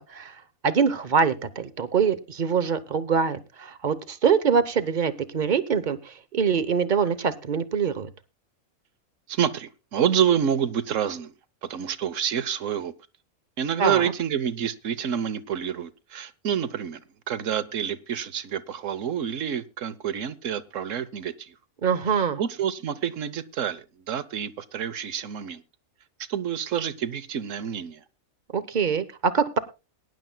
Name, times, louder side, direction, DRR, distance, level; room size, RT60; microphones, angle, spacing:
voice 1, 0.0-8.1 13.8-14.1 21.8-22.4 28.5-29.6, right 6 dB, 40° right, 0.9 m, -24 dB
voice 2, 9.3-11.3 11.6-12.9 13.6-17.0 17.3-21.5 22.4-25.6 26.3-28.0, right 9 dB, 70° right, 1.1 m, -28 dB
22.0 x 10.5 x 2.2 m
omnidirectional pair, 1.4 m